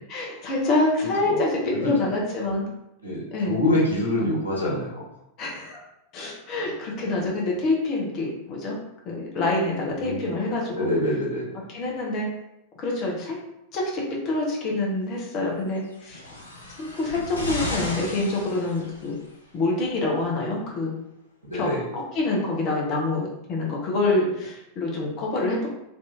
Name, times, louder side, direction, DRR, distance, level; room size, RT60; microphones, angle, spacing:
voice 1, 0.1-1.5 1.8-2.7 3.3-3.6 5.4-5.8 6.1-8.8 9.0-10.9 11.7-12.3 12.8-13.4 13.7-16.2 16.8-19.1 19.5-20.9 21.5-25.7, left 2 dB, 35° left, -2 dB, 1.0 m, -26 dB
voice 2, 1.2-1.9 3.0-5.1 6.6-6.7 9.9-10.2 10.7-11.5 21.4-21.9, left 1 dB, 80° right, -5 dB, 0.9 m, -26 dB
sound 1, 15.9-19.3 20.2-20.3, left 1 dB, 80° left, 0.6 m, -34 dB
3.5 x 2.9 x 2.8 m, 0.84 s
figure-of-eight pair, 90°, 0 cm